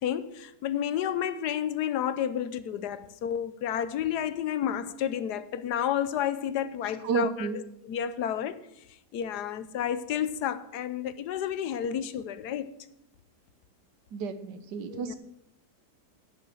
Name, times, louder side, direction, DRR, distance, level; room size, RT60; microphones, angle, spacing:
voice 1, 0.0-7.5 7.8-8.6 9.1-12.7 14.9-15.1, left 9 dB, 75° left, 1.3 m, -31 dB
voice 2, 7.0-7.6 14.1-15.1, right 5 dB, 85° right, 1.6 m, -31 dB
10.5 x 7.1 x 7.6 m
omnidirectional pair, 1.8 m